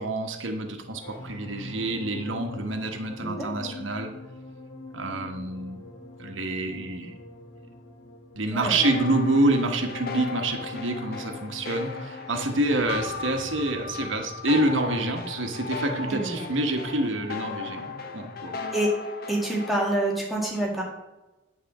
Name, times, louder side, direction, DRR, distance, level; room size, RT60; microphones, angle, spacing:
voice 1, 0.0-4.1 4.9-5.8 6.2-7.2 8.3-18.6, right 2 dB, 80° right, 4 dB, 1.3 m, -27 dB
sound 1, 0.6-17.3 17.6-17.9, left 2 dB, 85° left, 2.1 m, -44 dB
voice 2, 3.2-3.8 8.5-9.0 16.1-16.5 18.7-18.9 19.3-20.8, right 1 dB, ahead, -4 dB, 2.0 m, -28 dB
sound 2, 8.8-20.1, left 3 dB, 50° left, 0.9 m, -36 dB
10.0 x 4.2 x 7.2 m, 1.0 s
head